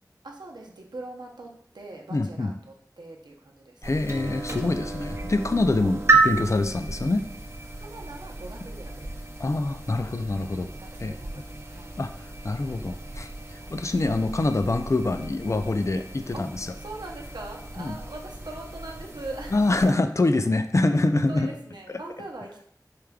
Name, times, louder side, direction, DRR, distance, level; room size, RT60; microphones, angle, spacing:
voice 1, 0.2-3.8 7.8-9.2 10.5-11.9 13.6-13.7 16.3-16.4 16.8-19.6 21.3-22.6, right 2 dB, 90° right, 0 dB, 0.7 m, -41 dB
voice 2, 2.1-2.6 3.8-7.3 9.4-10.7 11.0-11.4 12.0-12.1 12.4-16.7 17.8-18.0 19.5-21.5 21.9-22.0, left 2 dB, 45° left, 8 dB, 0.4 m, -25 dB
sound 1, 3.8-19.9, right 3 dB, 40° right, 0.6 m, -32 dB
4.8 x 3.4 x 2.3 m, 0.66 s
wide cardioid pair, 45°, 7 cm